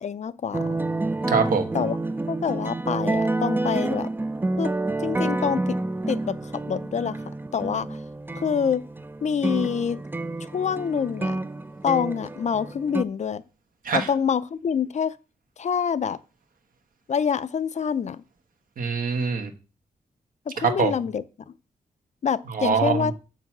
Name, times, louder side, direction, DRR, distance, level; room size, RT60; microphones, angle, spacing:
voice 1, 0.0-0.8 1.7-2.0 2.3-4.1 4.6-4.7 5.0-5.8 6.1-7.2 7.5-8.0 8.4-8.8 9.2-10.0 10.4-11.4 11.8-13.4 13.9-15.1 15.6-16.2 17.1-18.2 20.5-21.2 22.2-23.1, left 7 dB, 55° left, 0.5 m, -26 dB
sound 1, 0.5-13.0, right 2 dB, 15° right, 0.4 m, -29 dB
voice 2, 1.3-1.7 13.8-14.1 18.8-19.5 20.6-20.9 22.5-23.1, right 5 dB, 75° right, 1.3 m, -23 dB
7.4 x 4.0 x 6.0 m
cardioid pair, 70°, 14 cm